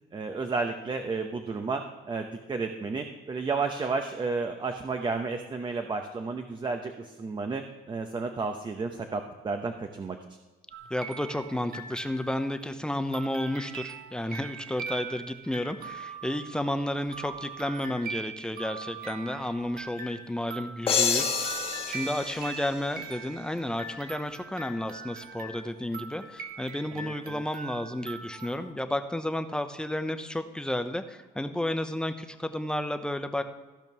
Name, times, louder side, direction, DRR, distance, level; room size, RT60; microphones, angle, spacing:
voice 1, 0.1-10.2 26.9-27.4, right 4 dB, 25° right, 5 dB, 0.9 m, -32 dB
sound 1, 10.7-12.6 13.1-28.7, right 5 dB, 60° right, 1.3 m, -42 dB
voice 2, 10.9-33.4, left 1 dB, 5° left, 8 dB, 0.8 m, -32 dB
sound 2, 20.9-23.5, left 6 dB, 35° left, 1.5 m, -29 dB
15.0 x 5.2 x 6.1 m, 1.3 s
cardioid pair, 110°, 17 cm